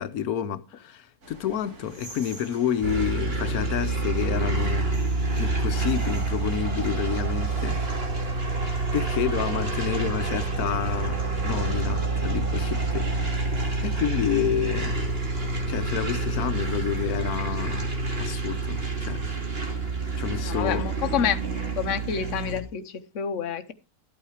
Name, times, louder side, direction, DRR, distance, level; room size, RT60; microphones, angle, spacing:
voice 1, 0.0-5.0 5.4-7.8 8.9-13.5 13.8-15.0 15.7-17.9 18.2-19.2 20.2-21.3, left 9 dB, 85° left, 1.3 m, -29 dB
sound 1, 1.2-17.5, equal, 85° right, 3.4 m, -45 dB
sound 2, 2.8-22.6, right 3 dB, 40° right, 2.4 m, -28 dB
voice 2, 20.4-21.4 21.8-23.7, left 8 dB, 60° left, 1.2 m, -28 dB
12.5 x 8.6 x 4.8 m
omnidirectional pair, 1.6 m